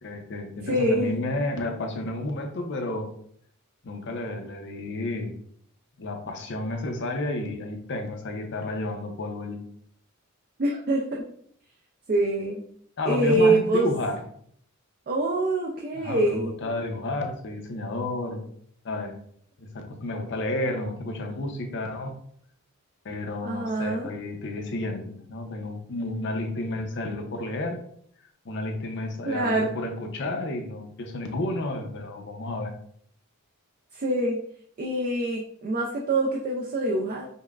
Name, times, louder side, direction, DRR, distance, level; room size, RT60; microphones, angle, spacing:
voice 1, 0.0-3.1 3.8-5.3 6.0-9.6 13.0-14.2 15.9-18.4 18.8-19.2 19.6-22.1 23.0-27.8 28.4-32.7, left 2 dB, 55° left, 4 dB, 0.6 m, -31 dB
voice 2, 0.6-1.2 10.6-11.2 12.1-12.6 13.0-13.9 15.1-16.5 23.4-24.1 29.3-29.7 33.9-34.4 34.8-37.3, right 2 dB, 40° right, -1 dB, 0.4 m, -25 dB
5.3 x 2.1 x 2.4 m, 0.64 s
head